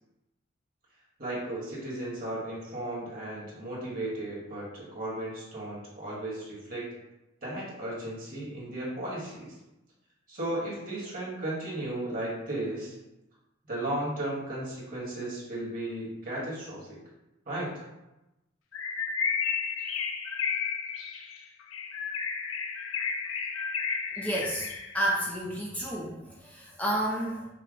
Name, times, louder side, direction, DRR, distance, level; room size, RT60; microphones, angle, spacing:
voice 1, 1.2-6.8 7.4-9.5 10.3-12.9 13.7-17.0 17.5-17.7, right 1 dB, 45° right, -5 dB, 1.5 m, -35 dB
Bird, 18.7-25.0, left 6 dB, 90° left, 0.5 m, -32 dB
voice 2, 24.2-24.7 24.9-27.5, right 1 dB, 5° left, -4 dB, 0.4 m, -30 dB
5.7 x 2.1 x 3.7 m, 0.97 s
head